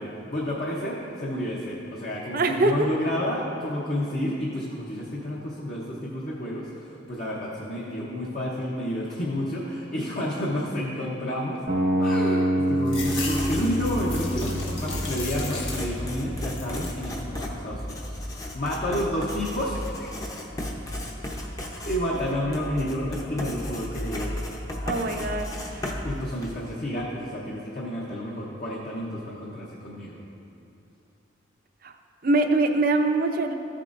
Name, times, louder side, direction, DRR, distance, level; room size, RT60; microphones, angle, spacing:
voice 1, 0.0-11.6 12.0-20.1 21.8-24.4 26.0-30.2, equal, 45° left, -4 dB, 0.9 m, -30 dB
voice 2, 2.3-2.7 24.8-25.9 31.8-31.9 32.2-33.6, right 2 dB, 50° right, 5 dB, 0.6 m, -23 dB
sound 1, 11.7-17.7, right 1 dB, 85° right, 1.4 m, -28 dB
sound 2, 12.9-16.1 16.4-17.0 17.5-18.2, left 4 dB, 85° left, 1.4 m, -37 dB
Writing, 12.9-26.7, left 1 dB, 20° left, 0.7 m, -34 dB
14.0 x 7.4 x 2.6 m, 2.8 s
head